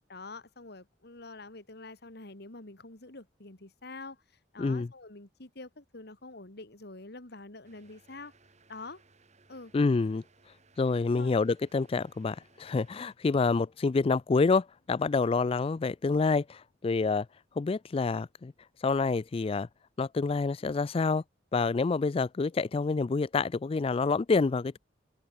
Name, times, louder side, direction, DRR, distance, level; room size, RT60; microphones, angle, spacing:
voice 1, 0.1-4.2 4.5-8.3 8.7-9.0 9.5-9.7 10.8-11.5, left 3 dB, 60° left, 2.4 m, -46 dB
voice 2, 4.6-4.9 9.7-10.2 10.8-17.3 17.6-18.5 18.8-19.7 20.0-21.2 21.5-24.8, left 4 dB, 30° left, 0.3 m, -27 dB
sound 1, 7.6-13.2, right 3 dB, 40° right, 3.5 m, -63 dB
head